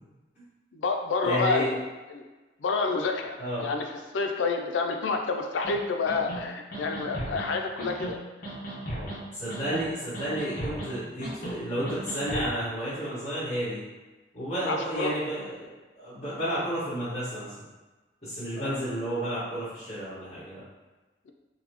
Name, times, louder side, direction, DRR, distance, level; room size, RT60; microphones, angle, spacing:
voice 1, 0.7-1.8 2.1-2.2 2.6-3.9 4.1-8.2 14.6-15.1 18.6-18.8, left 4 dB, 90° left, 4 dB, 0.4 m, -28 dB
voice 2, 1.2-1.7 3.4-3.7 9.3-13.8 14.3-17.5 18.2-20.6, right 1 dB, 35° left, -17 dB, 1.4 m, -31 dB
sound 1, 5.6-5.8 6.1-6.4 6.7-7.5 7.8-8.1 8.4-9.2 9.5-9.9 10.1-10.9 11.2-11.5 11.9-12.5, right 1 dB, 50° left, 0.8 m, -36 dB
4.0 x 2.1 x 2.9 m, 1.2 s
head